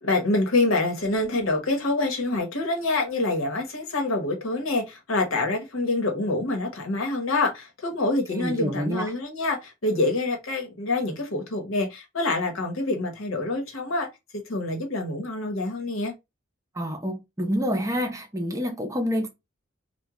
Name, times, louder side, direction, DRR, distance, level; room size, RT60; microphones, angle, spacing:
voice 1, 0.0-14.1 14.5-16.1, left 2 dB, 80° left, 1.1 m, -26 dB
voice 2, 8.4-9.0 16.8-19.3, equal, 15° right, 0.6 m, -27 dB
3.0 x 2.2 x 3.6 m
head